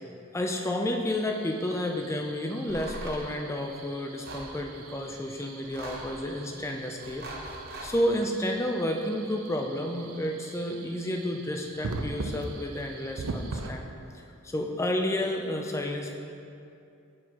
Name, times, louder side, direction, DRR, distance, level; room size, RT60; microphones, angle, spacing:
voice 1, 0.3-7.3 7.8-13.9 14.1-16.1, left 1 dB, 15° left, 2 dB, 0.3 m, -31 dB
sound 1, 1.1-13.7, right 3 dB, 85° right, 0.5 m, -42 dB
sound 2, 2.7-3.3 4.2-4.5 5.6-6.2 7.0-8.0, right 1 dB, 45° right, 0.7 m, -40 dB
7.9 x 4.6 x 2.9 m, 2.6 s
head